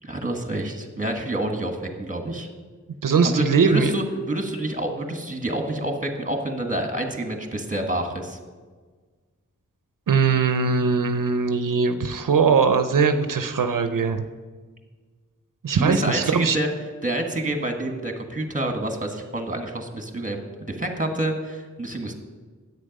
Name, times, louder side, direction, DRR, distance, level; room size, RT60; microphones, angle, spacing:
voice 1, 0.0-2.5 3.2-8.4 15.8-16.7 17.0-22.1, right 1 dB, 25° right, 4 dB, 1.5 m, -28 dB
voice 2, 3.0-3.9 10.1-14.2 15.6-16.6, right 5 dB, 85° right, 8 dB, 0.6 m, -20 dB
10.0 x 8.4 x 5.2 m, 1.4 s
wide cardioid pair, 65°, 31 cm